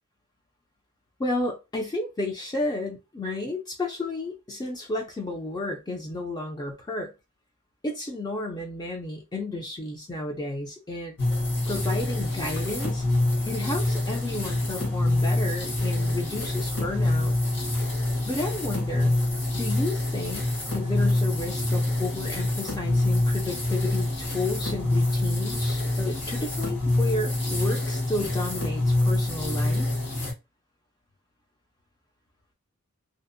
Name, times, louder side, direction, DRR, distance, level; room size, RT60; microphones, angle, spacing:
voice 1, 1.2-7.1 7.8-11.2 11.7-13.0 13.5-17.3 18.2-19.2 19.5-20.5 20.7-29.9, left 2 dB, 20° left, 0.4 m, -32 dB
sound 1, 11.2-30.3, left 1 dB, 50° left, 1.1 m, -26 dB
2.6 x 2.0 x 2.5 m
head